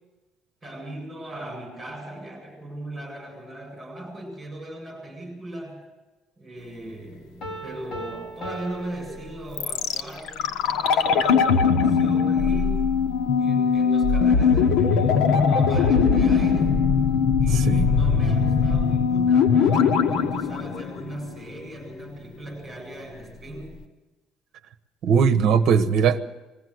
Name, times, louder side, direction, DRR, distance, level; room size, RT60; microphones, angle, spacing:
voice 1, 0.6-5.8 6.4-12.8 13.4-16.8 17.4-23.8, right 1 dB, 15° right, 2 dB, 7.7 m, -38 dB
Piano, 7.4-10.0, right 2 dB, 40° left, 3.4 m, -38 dB
sound 1, 9.6-21.6 21.8-21.9, left 6 dB, 75° left, 1.2 m, -20 dB
voice 2, 17.5-17.9 25.0-26.2, right 6 dB, 55° right, 10 dB, 1.1 m, -20 dB
21.0 x 15.5 x 7.9 m, 1.2 s
cardioid pair, 160°, 0 cm